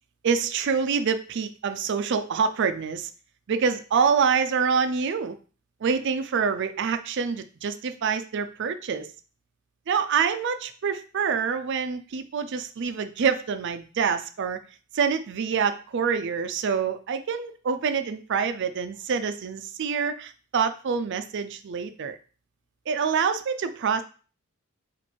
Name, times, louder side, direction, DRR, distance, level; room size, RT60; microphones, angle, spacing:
voice 1, 0.2-3.1 3.5-5.4 5.8-9.1 9.9-14.6 14.9-22.2 22.9-24.0, right 6 dB, 60° right, 10 dB, 0.4 m, -26 dB
4.2 x 2.5 x 4.4 m, 0.38 s
head